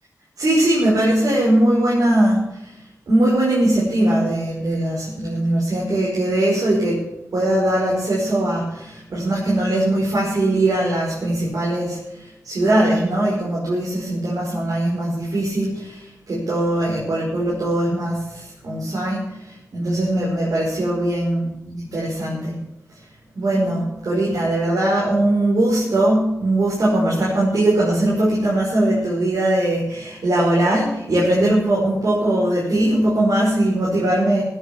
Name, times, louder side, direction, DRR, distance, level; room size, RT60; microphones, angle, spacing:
voice 1, 0.4-2.7 3.1-7.0 7.3-22.6 23.4-34.4, right 1 dB, 70° right, -6 dB, 5.4 m, -20 dB
16.5 x 9.1 x 6.1 m, 0.86 s
cardioid pair, 70°, 6 cm